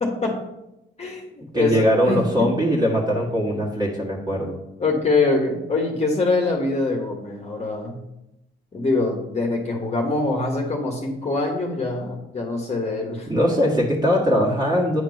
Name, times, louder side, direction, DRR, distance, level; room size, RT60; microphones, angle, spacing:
voice 1, 0.0-0.4 1.0-2.5 4.8-8.0 8.7-13.3, left 3 dB, 35° left, 0 dB, 1.5 m, -24 dB
voice 2, 1.5-4.6 13.3-15.0, equal, 20° right, -5 dB, 1.8 m, -21 dB
9.0 x 4.5 x 5.4 m, 0.90 s
cardioid pair, 90°, 20 cm